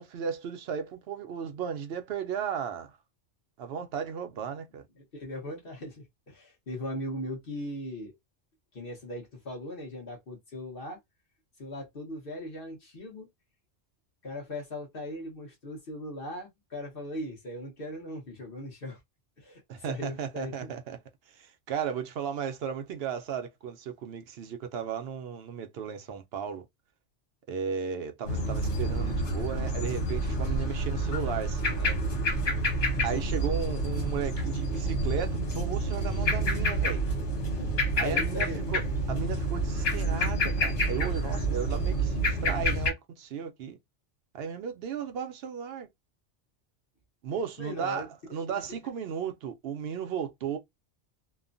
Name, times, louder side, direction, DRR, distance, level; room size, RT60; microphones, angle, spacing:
voice 1, 0.0-3.0 3.6-4.8 19.7-21.0 21.3-26.7 27.5-32.0 33.0-37.0 38.0-38.8 39.1-43.8 44.3-45.9 47.2-50.6, right 7 dB, 65° right, 0.8 m, -35 dB
voice 2, 5.0-8.1 8.7-11.0 11.6-13.3 14.2-19.0 19.4-19.6 19.9-20.7 37.5-38.7 47.6-48.1 48.5-48.8, left 1 dB, 50° left, 1.2 m, -39 dB
sound 1, 28.3-42.9, right 1 dB, 85° left, 1.4 m, -28 dB
3.0 x 2.1 x 2.5 m
omnidirectional pair, 1.2 m